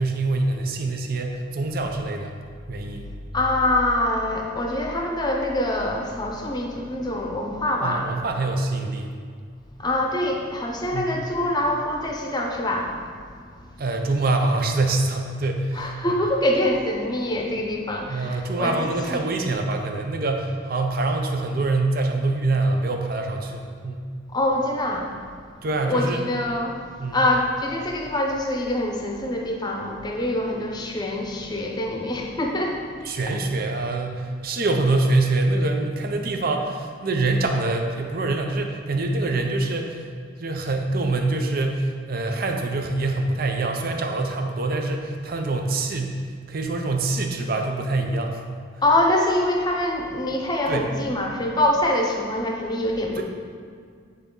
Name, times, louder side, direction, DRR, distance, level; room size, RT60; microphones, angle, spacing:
voice 1, 0.0-2.3 2.7-3.1 7.8-9.1 10.9-11.2 13.8-16.2 18.1-24.1 25.6-26.2 27.0-27.2 33.0-40.0 40.4-46.2 46.5-48.4 50.7-50.9 53.2-53.3, right 2 dB, 50° right, 3 dB, 0.6 m, -25 dB
voice 2, 3.3-8.1 9.8-13.1 13.6-13.7 15.7-19.2 24.3-25.1 25.8-26.8 27.1-32.9 33.3-33.4 48.8-53.2, left 1 dB, 20° left, 1 dB, 0.7 m, -25 dB
9.4 x 4.0 x 3.8 m, 2.1 s
head